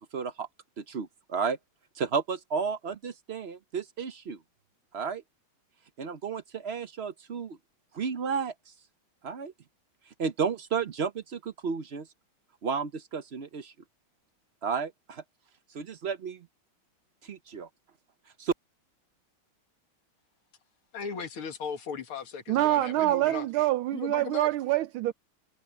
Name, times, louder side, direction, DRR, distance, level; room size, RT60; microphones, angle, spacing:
voice 1, 0.1-0.5 0.8-1.6 2.0-4.4 4.9-5.2 6.0-7.6 7.9-8.5 9.2-9.5 10.2-12.1 12.6-13.7 14.6-15.2 15.7-16.5 17.2-17.7 18.4-18.5, right 6 dB, 60° right, 0.6 m, -32 dB
voice 2, 20.9-23.5 23.9-24.5, left 6 dB, 85° left, 2.8 m, -37 dB
voice 3, 22.5-25.1, right 15 dB, 80° right, 1.5 m, -26 dB
omnidirectional pair, 2.3 m